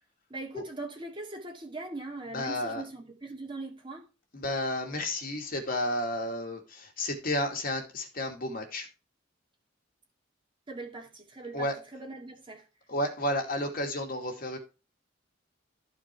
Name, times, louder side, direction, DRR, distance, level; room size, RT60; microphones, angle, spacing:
voice 1, 0.3-4.1 10.7-12.7, right 2 dB, 25° right, 2.4 m, -41 dB
voice 2, 2.3-2.8 4.3-8.9 11.5-11.7 12.9-14.6, left 1 dB, 50° left, 2.6 m, -32 dB
14.0 x 5.1 x 4.7 m
head